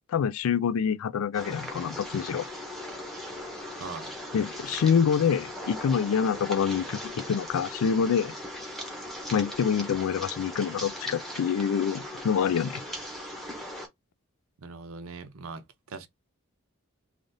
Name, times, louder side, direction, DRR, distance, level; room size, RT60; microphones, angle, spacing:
voice 1, 0.1-2.5 4.3-8.4 9.3-12.8, left 7 dB, 70° left, 0.3 m, -26 dB
sound 1, 1.3-13.9, equal, ahead, 0.8 m, -39 dB
voice 2, 3.8-4.1 14.6-16.1, right 4 dB, 70° right, 0.6 m, -41 dB
3.3 x 2.5 x 2.6 m
head